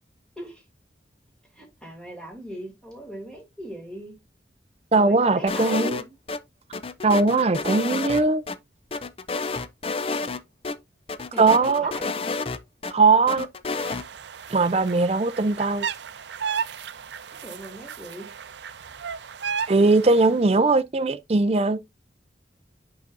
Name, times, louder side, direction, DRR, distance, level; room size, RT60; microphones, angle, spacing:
voice 1, 1.5-4.1 4.9-6.2 11.3-12.3 17.4-18.3, right 1 dB, 5° left, 2.6 m, -39 dB
voice 2, 4.9-6.0 7.0-8.4 11.4-11.9 12.9-13.5 14.5-15.9 19.7-21.8, right 3 dB, 35° right, 0.4 m, -20 dB
sound 1, 5.5-6.4 6.7-8.6 8.9-10.4 10.6-10.8 11.1-12.9 13.3-14.0, left 4 dB, 30° left, 0.5 m, -30 dB
sound 2, 13.8-20.4, right 7 dB, 80° right, 0.6 m, -34 dB
8.5 x 5.8 x 2.5 m
head